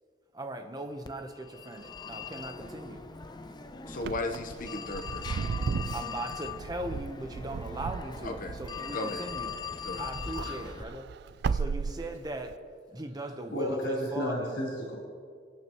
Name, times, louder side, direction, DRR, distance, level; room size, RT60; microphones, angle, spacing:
voice 1, 0.3-3.0 5.9-9.5 10.0-11.1 11.5-12.6 12.9-14.6, right 1 dB, 20° right, 5 dB, 1.0 m, -39 dB
Telephone, 1.0-10.8, left 5 dB, 25° left, 0.5 m, -41 dB
voice 2, 3.9-5.4 8.2-8.5 8.9-9.3 9.8-10.1 11.4-11.6, left 2 dB, 50° left, 5 dB, 1.0 m, -36 dB
Wind / Car, 3.9-9.8 10.1-12.5, right 5 dB, 60° right, 0.3 m, -35 dB
voice 3, 13.5-15.0, equal, 85° left, -5 dB, 3.9 m, -31 dB
26.5 x 9.0 x 3.1 m, 2.1 s
head